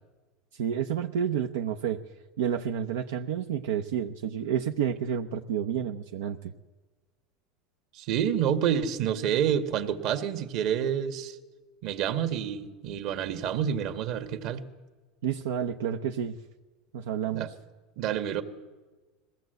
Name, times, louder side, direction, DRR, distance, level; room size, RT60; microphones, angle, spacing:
voice 1, 0.5-2.0 2.4-6.5 15.2-16.4 16.9-17.5, right 8 dB, 85° right, 5 dB, 0.8 m, -30 dB
voice 2, 7.9-11.4 11.8-14.6 17.3-17.5 18.0-18.4, right 9 dB, 60° right, 8 dB, 1.7 m, -28 dB
21.0 x 17.0 x 7.9 m, 1.3 s
supercardioid pair, 105°, 0 cm